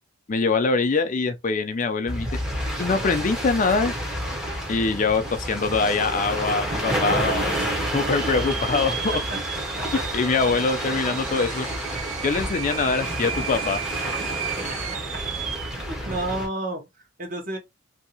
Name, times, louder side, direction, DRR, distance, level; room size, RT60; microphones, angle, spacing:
voice 1, 0.3-2.3 2.8-3.9 4.7-7.5 7.9-9.1 10.1-11.7 12.2-13.8, left 4 dB, 35° left, 0.4 m, -23 dB
sound 1, 2.1-16.5, equal, 5° right, 0.7 m, -29 dB
sound 2, 4.9-5.0 5.2-5.8 6.3-6.4 7.1-15.8, right 10 dB, 60° right, 0.4 m, -34 dB
voice 2, 15.8-17.6, right 2 dB, 40° right, 1.0 m, -31 dB
2.8 x 2.7 x 2.8 m
head